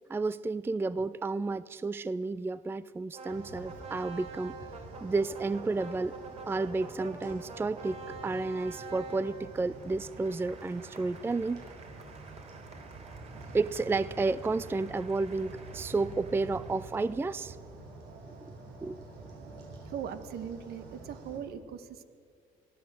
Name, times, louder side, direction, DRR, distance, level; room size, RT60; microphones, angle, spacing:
voice 1, 0.1-4.5 5.0-6.1 6.5-11.6 13.5-17.6 18.3-18.4 18.8-19.0, right 3 dB, 15° right, 17 dB, 0.4 m, -31 dB
sound 1, 3.1-17.3, right 3 dB, 40° right, 3.7 m, -48 dB
sound 2, 3.3-21.4, right 3 dB, 85° right, 6.7 m, -48 dB
voice 2, 19.8-22.0, right 8 dB, 70° right, 10 dB, 1.6 m, -40 dB
23.5 x 16.0 x 7.8 m, 2.3 s
cardioid pair, 110°, 17 cm